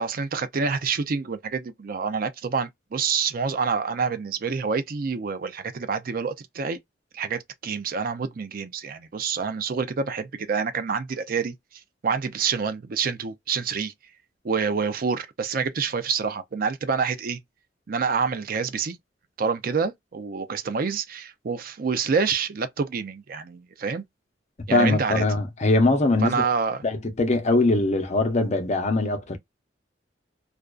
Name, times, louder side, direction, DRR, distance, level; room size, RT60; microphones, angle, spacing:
voice 1, 0.0-6.8 7.1-11.5 12.0-13.9 14.4-17.4 17.9-19.0 19.4-24.0 24.7-25.2 26.2-26.8, right 5 dB, 55° right, 0.5 m, -27 dB
voice 2, 24.7-26.4 26.8-29.4, left 2 dB, 40° left, 0.7 m, -22 dB
2.4 x 2.3 x 2.3 m
head